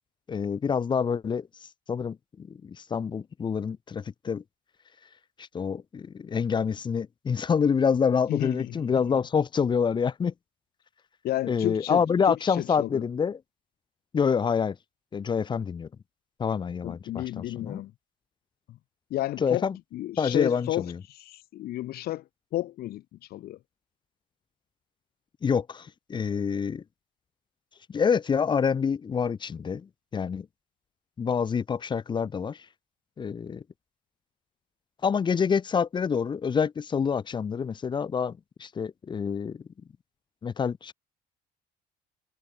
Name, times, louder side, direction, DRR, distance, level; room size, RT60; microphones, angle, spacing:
voice 1, 0.3-1.5 1.9-4.4 5.4-10.3 11.4-13.4 14.1-14.8 15.1-15.9 16.4-17.8 19.4-19.8 20.2-21.0 25.4-26.8 27.9-30.5 31.2-32.7 33.2-33.6 35.0-39.6 40.4-40.9, left 6 dB, 25° left, 0.5 m, -27 dB
voice 2, 8.3-9.2 11.2-13.0 16.8-17.9 18.7-18.8 19.1-22.2 22.5-23.0 23.3-23.6, left 15 dB, 65° left, 0.8 m, -32 dB
cardioid pair, 110°, 17 cm